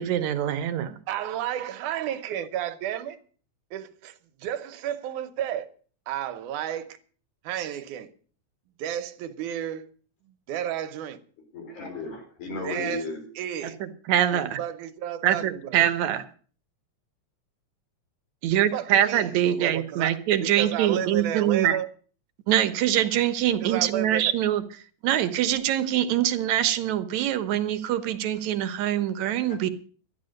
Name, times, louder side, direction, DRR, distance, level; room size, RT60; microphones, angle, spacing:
voice 1, 0.0-1.0 13.8-14.6 15.2-16.2 18.4-21.8 22.5-24.6 25.0-29.7, right 11 dB, 75° right, 2.2 m, -24 dB
voice 2, 1.1-3.2 3.7-5.7 6.1-6.9 7.4-8.1 8.8-9.9 10.3-11.2 12.6-13.0 13.4-13.8 14.3-15.9 18.7-21.9 23.6-24.3, right 10 dB, 90° right, 2.5 m, -32 dB
voice 3, 11.5-13.2, left 3 dB, 80° left, 5.6 m, -34 dB
13.0 x 10.5 x 6.5 m
omnidirectional pair, 3.4 m